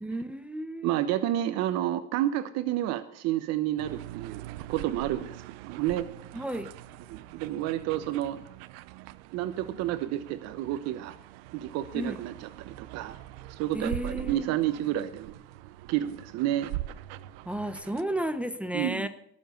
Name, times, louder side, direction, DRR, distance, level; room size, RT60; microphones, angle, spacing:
voice 1, 0.0-0.9 6.3-6.7 11.9-12.2 13.7-14.5 17.5-19.1, right 1 dB, 5° right, 10 dB, 0.8 m, -33 dB
voice 2, 0.8-6.1 7.1-8.4 9.3-11.2 11.5-13.2 13.5-15.4 15.9-16.7 18.7-19.1, right 13 dB, 60° right, 11 dB, 1.0 m, -30 dB
sound 1, 3.8-18.0, right 15 dB, 90° right, 0.7 m, -43 dB
19.5 x 7.4 x 6.6 m, 0.69 s
cardioid pair, 135°, 29 cm